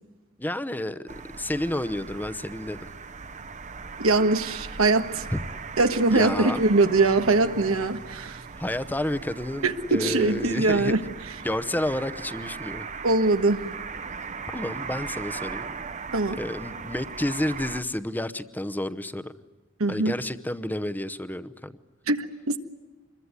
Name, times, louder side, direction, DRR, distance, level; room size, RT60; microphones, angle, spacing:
voice 1, 0.4-1.1 1.4-2.8 5.3-5.4 6.1-6.6 8.6-10.9 11.4-12.9 14.5-15.7 16.3-19.3 19.9-21.8, left 1 dB, 10° left, 11 dB, 0.8 m, -30 dB
sound 1, 1.1-17.8, right 5 dB, 35° right, 0.9 m, -38 dB
voice 2, 4.0-5.2 5.8-8.4 9.6-11.0 13.0-13.6 16.1-16.4 19.8-20.1 22.1-22.6, right 3 dB, 85° right, 8 dB, 1.5 m, -22 dB
26.0 x 22.0 x 9.7 m, 1.2 s
head